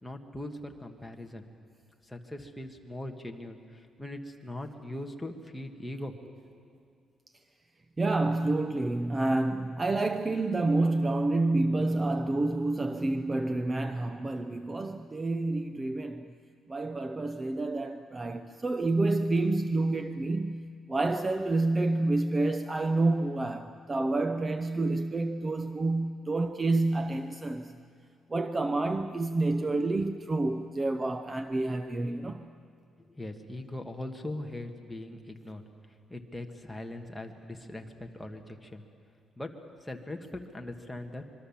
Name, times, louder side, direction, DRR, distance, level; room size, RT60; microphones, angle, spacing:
voice 1, 0.0-1.4 2.0-6.6 33.1-35.6 36.1-38.8 39.4-39.5 39.8-41.2, left 1 dB, 5° left, 1.6 m, -40 dB
voice 2, 8.0-16.3 16.7-27.8 28.3-32.5, right 2 dB, 20° right, 0.6 m, -28 dB
25.0 x 23.0 x 7.3 m
cardioid pair, 145°, 0 cm